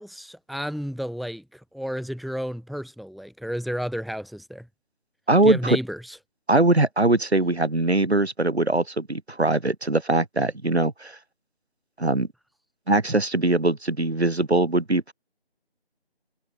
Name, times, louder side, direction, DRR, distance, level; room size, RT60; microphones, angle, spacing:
voice 1, 0.0-4.7 5.4-6.2, equal, ahead, 4.8 m, -32 dB
voice 2, 5.3-5.8 6.5-11.2 12.0-12.3 12.9-15.1, right 2 dB, 80° right, 4.6 m, -21 dB
figure-of-eight pair, 170°, 32 cm